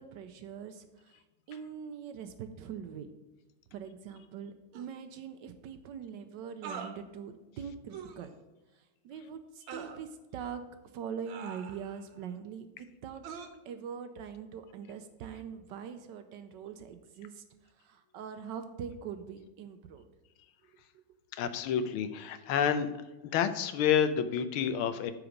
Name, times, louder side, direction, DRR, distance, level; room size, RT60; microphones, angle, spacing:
voice 1, 0.0-3.1 3.7-8.4 8.7-10.6 10.9-13.2 13.6-20.1 20.6-21.2 21.4-21.5, right 7 dB, 70° right, 9 dB, 1.1 m, -43 dB
sound 1, 4.7-4.9 6.6-7.0 7.9-8.3 9.7-10.0 11.3-12.1 13.2-13.5, right 6 dB, 90° right, 1.8 m, -43 dB
voice 2, 21.3-22.9 23.3-25.1, left 8 dB, 85° left, 11 dB, 1.6 m, -29 dB
8.9 x 5.0 x 5.1 m, 1.1 s
omnidirectional pair, 2.3 m